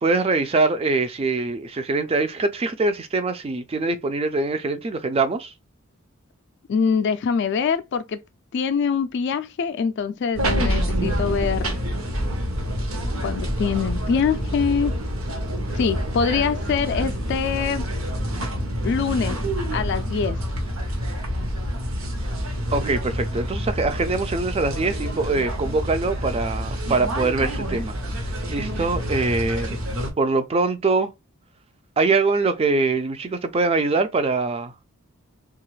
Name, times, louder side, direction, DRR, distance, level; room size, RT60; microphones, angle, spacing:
voice 1, 0.0-5.5 22.7-27.9 28.2-29.7 30.2-31.1 32.0-34.7, right 3 dB, 25° right, 0.3 m, -23 dB
voice 2, 6.7-8.2 8.5-11.8 13.2-14.9 15.7-17.9 18.8-19.4 19.7-20.4, left 6 dB, 55° left, 0.3 m, -24 dB
sound 1, 10.4-30.1, equal, 65° right, 0.8 m, -27 dB
2.9 x 2.4 x 3.1 m
head